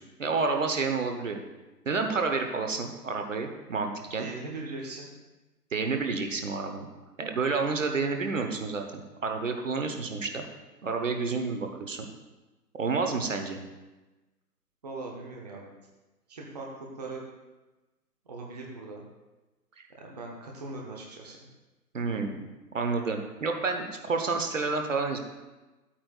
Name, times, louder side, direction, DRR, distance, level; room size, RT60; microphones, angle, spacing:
voice 1, 0.2-1.4 1.9-4.3 5.7-6.9 7.2-10.4 10.8-12.1 12.8-13.6 19.8-19.9 21.9-22.4 22.7-25.2, right 4 dB, 50° right, 5 dB, 1.0 m, -29 dB
voice 2, 4.2-5.1 14.8-15.7 16.3-17.2 18.3-19.0 20.0-21.4, right 3 dB, 25° right, -1 dB, 0.8 m, -40 dB
12.5 x 8.6 x 2.3 m, 1.1 s
figure-of-eight pair, 145°, 49 cm